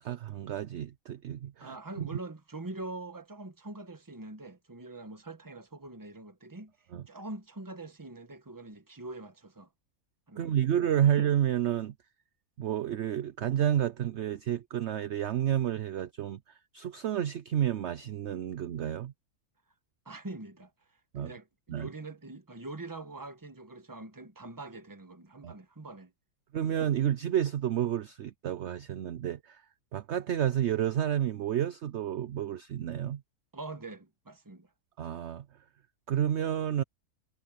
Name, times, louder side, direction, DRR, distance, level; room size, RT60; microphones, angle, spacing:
voice 1, 0.0-2.1 6.9-7.0 10.4-11.9 12.6-16.4 16.7-19.1 21.1-21.3 21.7-21.9 25.4-25.5 26.5-29.6 29.9-33.2 35.0-35.4 36.1-36.8, right 10 dB, 60° right, 0.8 m, -30 dB
voice 2, 1.6-6.7 7.1-9.7 10.3-10.7 11.0-11.1 20.0-20.7 21.2-26.1 26.6-26.7 33.5-34.7, right 2 dB, 15° right, 1.2 m, -44 dB
omnidirectional pair, 1.6 m